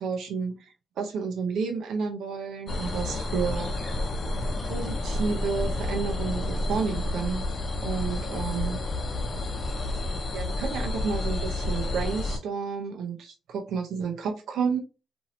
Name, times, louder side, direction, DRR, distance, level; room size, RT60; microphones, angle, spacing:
voice 1, 0.0-3.9 4.7-7.5 7.8-8.8 10.3-14.8, right 5 dB, 85° right, 3 dB, 0.5 m, -31 dB
sound 1, 2.7-12.4, left 2 dB, 40° left, 0.7 m, -30 dB
2.7 x 2.6 x 3.0 m, 0.32 s
cardioid pair, 95°, 0 cm